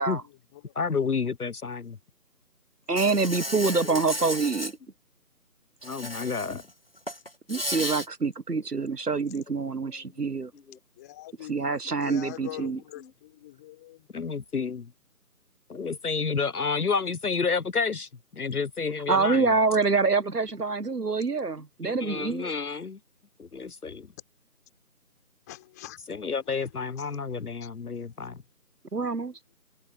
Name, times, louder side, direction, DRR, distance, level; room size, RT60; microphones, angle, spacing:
voice 1, 0.0-0.7 11.0-14.1 25.5-26.0 26.4-27.7, left 16 dB, 10° left, 4.0 m, -45 dB
voice 2, 0.8-2.0 3.9-4.0 5.8-6.6 10.7-10.8 14.1-14.9 15.7-19.5 21.8-23.0 23.4-24.1 26.1-28.4, left 5 dB, 70° left, 0.9 m, -30 dB
voice 3, 2.9-4.7 7.5-10.5 11.5-12.8 19.1-22.5 28.9-29.4, right 4 dB, 75° right, 1.5 m, -26 dB
Insect, 3.0-4.7 5.8-6.6 7.0-8.1, equal, 40° left, 0.5 m, -34 dB
figure-of-eight pair, 160°, 47 cm